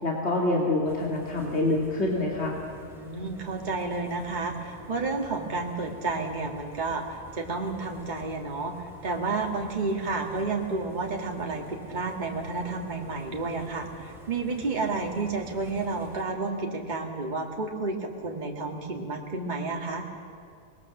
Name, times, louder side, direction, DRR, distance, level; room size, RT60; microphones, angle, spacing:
voice 1, 0.0-2.6, left 2 dB, 45° left, -1 dB, 2.8 m, -26 dB
sound 1, 0.9-16.2, right 1 dB, ahead, 3.9 m, -48 dB
voice 2, 2.9-20.0, right 3 dB, 30° right, 1 dB, 1.9 m, -31 dB
25.0 x 20.5 x 7.1 m, 2.5 s
omnidirectional pair, 1.5 m